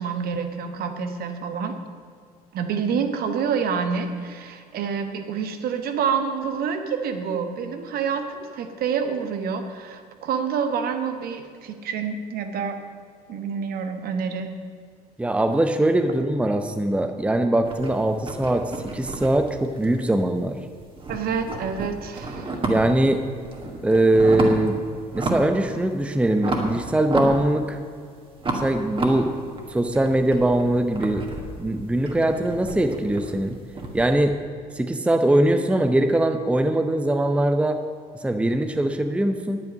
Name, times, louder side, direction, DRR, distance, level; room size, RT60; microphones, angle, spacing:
voice 1, 0.0-1.8 2.5-12.8 13.3-14.5 21.1-22.6, right 6 dB, 50° right, 7 dB, 1.2 m, -27 dB
voice 2, 15.2-20.6 22.6-23.2 23.8-24.8 25.1-27.8 28.5-29.3 29.7-31.3 31.6-33.6 33.9-34.4 34.7-37.8 38.2-39.6, right 1 dB, 5° right, 7 dB, 0.8 m, -21 dB
sound 1, 17.6-20.5 20.8-23.1 23.4-24.7 25.1-25.6 25.9-27.9 28.4-34.1, right 2 dB, 25° right, 2.1 m, -31 dB
10.5 x 8.8 x 6.4 m, 2.2 s
figure-of-eight pair, 55°, 20 cm